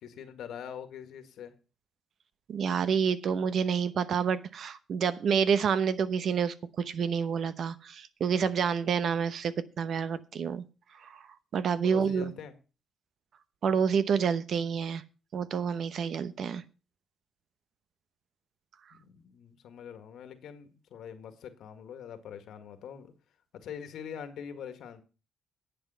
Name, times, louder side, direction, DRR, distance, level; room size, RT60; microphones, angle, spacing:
voice 1, 0.0-1.5 11.8-12.6 18.9-23.1 23.6-25.0, left 8 dB, 75° left, 9 dB, 1.8 m, -43 dB
voice 2, 2.5-10.6 11.0-11.2 11.5-12.3 13.6-15.0 15.3-16.6, right 7 dB, 60° right, 14 dB, 0.9 m, -28 dB
10.5 x 8.0 x 5.6 m, 0.34 s
cardioid pair, 90°, 0 cm